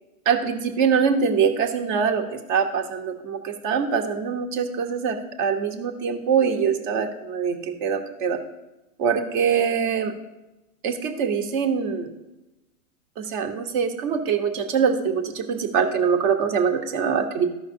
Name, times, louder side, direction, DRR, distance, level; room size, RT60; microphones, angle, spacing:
voice 1, 0.2-8.4 9.0-10.1 10.8-12.1 13.2-17.5, right 6 dB, 35° right, 6 dB, 1.1 m, -23 dB
14.5 x 5.7 x 2.7 m, 1.0 s
hypercardioid pair, 140°, 44 cm